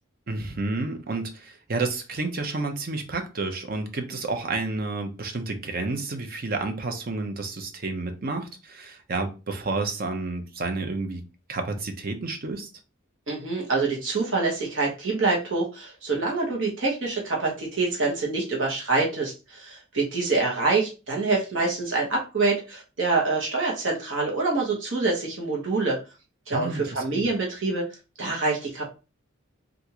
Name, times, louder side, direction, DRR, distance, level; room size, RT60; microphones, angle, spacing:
voice 1, 0.3-11.2 11.5-12.7 26.5-27.3, right 3 dB, 45° right, 0.6 m, -30 dB
voice 2, 13.3-26.0 26.5-27.9 28.2-28.8, right 3 dB, 65° right, 1.1 m, -26 dB
3.5 x 2.5 x 2.9 m
head